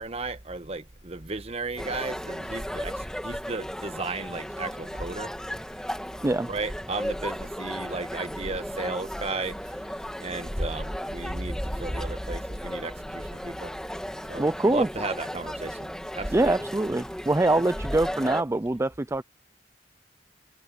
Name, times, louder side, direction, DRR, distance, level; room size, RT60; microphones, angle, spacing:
voice 1, 0.0-5.3 6.5-9.6 10.2-13.7 14.3-16.6, right 3 dB, 35° right, 1.2 m, -34 dB
sound 1, 1.8-18.4, equal, 5° left, 1.8 m, -35 dB
voice 2, 14.4-14.9 16.3-19.2, right 2 dB, 15° right, 0.4 m, -24 dB
head